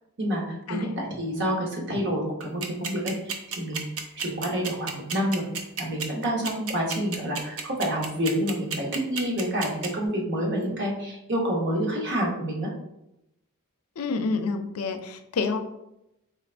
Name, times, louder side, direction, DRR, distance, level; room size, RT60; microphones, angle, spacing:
voice 1, 0.2-3.8 4.1-5.5 5.8-12.7, equal, 50° right, -1 dB, 1.0 m, -28 dB
sound 1, 2.4-9.9, right 6 dB, 70° right, 0.6 m, -31 dB
voice 2, 14.0-15.6, left 4 dB, 80° left, 7 dB, 0.4 m, -28 dB
4.5 x 2.5 x 3.3 m, 0.86 s
head